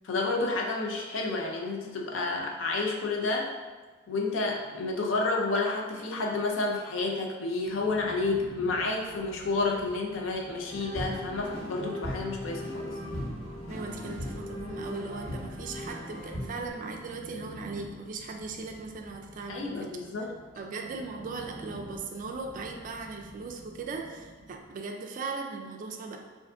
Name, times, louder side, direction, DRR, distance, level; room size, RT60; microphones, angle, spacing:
voice 1, 0.0-3.5 4.1-12.9 19.5-20.3, left 3 dB, 70° left, 0 dB, 0.5 m, -30 dB
sound 1, 7.6-24.8, equal, 25° right, 0.7 m, -49 dB
sound 2, 10.7-16.7, equal, 50° left, 1.3 m, -37 dB
voice 2, 13.7-19.9 20.6-26.2, right 4 dB, 45° right, 3 dB, 0.3 m, -38 dB
2.5 x 2.4 x 3.4 m, 1.4 s
head